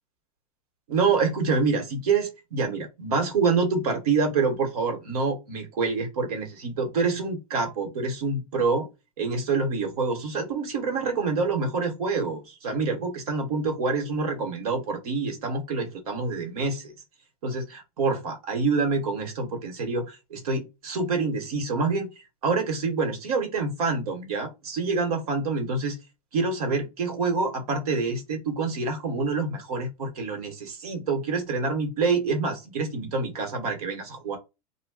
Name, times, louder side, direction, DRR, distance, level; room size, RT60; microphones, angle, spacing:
voice 1, 0.9-8.9 9.2-16.9 17.4-22.1 22.4-26.0 26.3-34.4, right 4 dB, 80° right, 1.2 m, -27 dB
2.2 x 2.2 x 3.5 m
hypercardioid pair, 100°, 19 cm